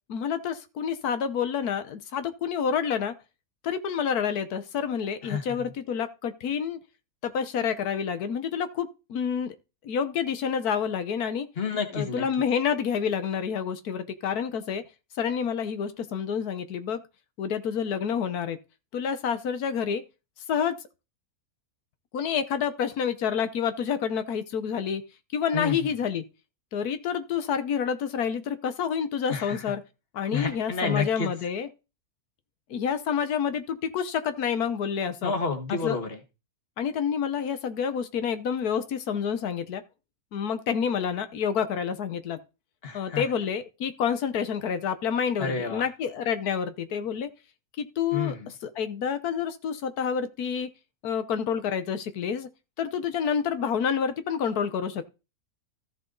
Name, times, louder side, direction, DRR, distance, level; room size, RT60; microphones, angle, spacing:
voice 1, 0.1-3.1 3.6-6.8 7.2-9.5 9.8-11.5 11.9-14.8 15.2-17.0 17.4-18.6 18.9-20.0 20.5-20.7 22.1-25.0 25.3-26.2 26.7-29.8 30.1-31.7 32.7-35.3 35.7-36.0 36.8-39.8 40.3-42.4 42.9-47.3 47.8-48.3 48.6-50.7 51.0-52.5 52.8-55.0, left 7 dB, 90° left, 1.5 m, -28 dB
voice 2, 5.2-5.7 11.6-12.3 25.5-25.9 29.3-29.6 30.3-31.3 35.2-36.2 42.8-43.2 45.4-45.8 48.1-48.5, left 4 dB, 40° left, 1.9 m, -30 dB
14.0 x 6.7 x 3.9 m
omnidirectional pair, 1.6 m